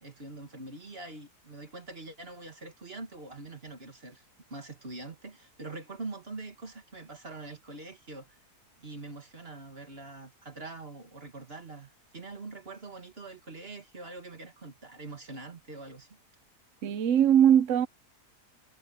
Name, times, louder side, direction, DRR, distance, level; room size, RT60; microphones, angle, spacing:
voice 1, 0.0-4.2 4.5-8.4 8.8-16.2, right 2 dB, 40° right, 2.2 m, -44 dB
voice 2, 16.8-17.9, right 9 dB, 60° right, 0.9 m, -21 dB
omnidirectional pair, 1.7 m